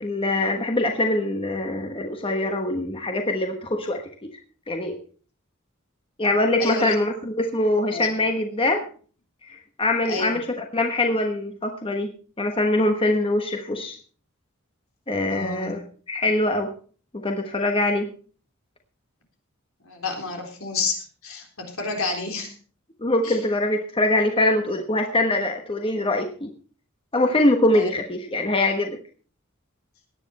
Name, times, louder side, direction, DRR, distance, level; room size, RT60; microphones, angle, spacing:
voice 1, 0.0-4.3 4.7-5.0 6.2-8.8 9.4-12.1 12.4-14.0 15.1-15.8 16.1-16.7 17.1-18.1 23.0-26.5 27.1-29.0, left 2 dB, 25° left, 4 dB, 1.2 m, -23 dB
voice 2, 6.6-7.0 7.9-8.1 10.1-10.4 15.3-15.8 19.8-21.0 21.2-22.5 23.2-23.4 27.7-27.9, left 3 dB, 75° left, 3 dB, 3.9 m, -29 dB
17.5 x 9.8 x 4.2 m, 0.41 s
head